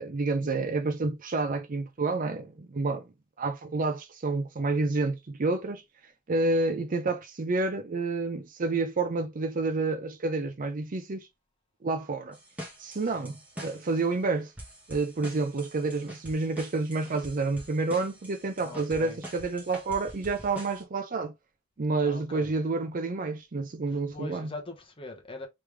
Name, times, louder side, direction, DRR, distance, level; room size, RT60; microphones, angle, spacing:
voice 1, 0.0-3.0 3.4-5.8 6.3-11.3 11.8-12.4 12.8-14.5 14.9-21.3 21.8-24.5, right 3 dB, 40° right, 0.5 m, -29 dB
sound 1, 12.3-14.1 14.6-20.8, equal, 5° right, 1.1 m, -45 dB
voice 2, 13.0-13.3 18.6-19.2 22.1-22.5 23.9-25.5, left 2 dB, 25° left, 1.0 m, -42 dB
3.2 x 3.2 x 3.3 m
head